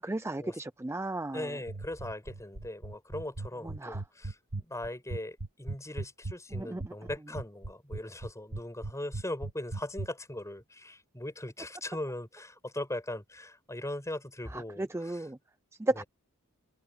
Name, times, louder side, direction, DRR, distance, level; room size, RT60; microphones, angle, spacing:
voice 1, 0.0-1.5 3.6-4.0 6.5-6.9 14.5-15.4 15.8-16.0, right 2 dB, 10° right, 0.4 m, -34 dB
voice 2, 1.3-15.3 16.0-16.1, left 1 dB, 15° left, 5.9 m, -39 dB
sound 1, 1.7-10.1, right 2 dB, 65° right, 1.9 m, -37 dB
head